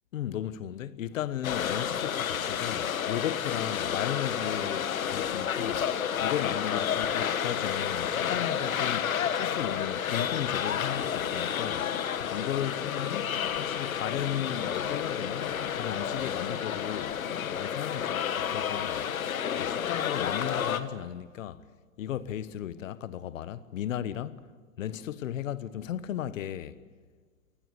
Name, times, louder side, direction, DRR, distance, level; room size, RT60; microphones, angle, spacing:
voice 1, 0.1-5.9 6.2-11.9 12.3-17.2 17.5-19.1 19.6-21.6 22.0-24.5 24.8-26.8, left 11 dB, 70° left, 1.4 m, -35 dB
sound 1, 1.4-20.8, left 8 dB, 90° left, 1.6 m, -30 dB
29.0 x 20.0 x 8.2 m
hypercardioid pair, 135°, 40 cm